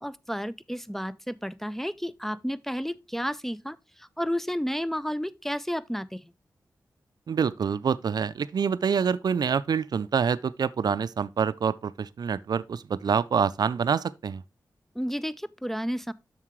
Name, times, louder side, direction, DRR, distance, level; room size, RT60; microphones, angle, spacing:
voice 1, 0.0-6.3 15.0-16.1, equal, 5° left, 0.4 m, -32 dB
voice 2, 7.3-14.4, right 6 dB, 65° right, 0.4 m, -26 dB
7.2 x 6.7 x 3.1 m
cardioid pair, 55°, 7 cm